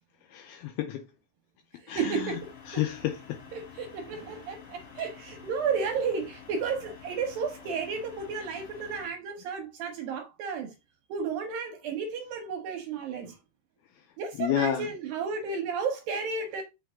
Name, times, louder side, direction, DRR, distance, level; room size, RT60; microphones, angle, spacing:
voice 1, 0.3-1.1 1.9-2.3 2.7-3.4 14.4-14.9, left 11 dB, 80° left, 2.4 m, -30 dB
voice 2, 1.8-2.8 3.5-10.7 11.1-13.4 14.2-16.6, right 5 dB, 75° right, 2.2 m, -33 dB
sound 1, 2.1-9.1, left 6 dB, 55° left, 1.7 m, -49 dB
7.4 x 5.2 x 3.5 m
omnidirectional pair, 4.8 m